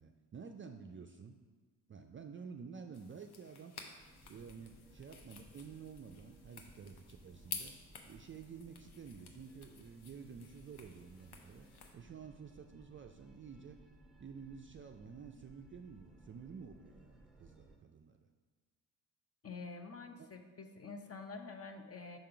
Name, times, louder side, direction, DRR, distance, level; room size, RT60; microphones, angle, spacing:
voice 1, 0.0-1.4 1.9-3.7 4.3-7.7 8.0-11.7 11.9-13.8 14.2-18.2 20.2-20.3, right 6 dB, 30° right, 5 dB, 0.4 m, -51 dB
sound 1, 2.9-11.9, left 5 dB, 55° left, 0.9 m, -52 dB
sound 2, 4.0-17.8, right 1 dB, ahead, 0.9 m, -61 dB
voice 2, 19.4-22.2, left 4 dB, 30° left, 6 dB, 0.7 m, -47 dB
5.5 x 3.6 x 5.7 m, 1.4 s
hypercardioid pair, 55°, 46 cm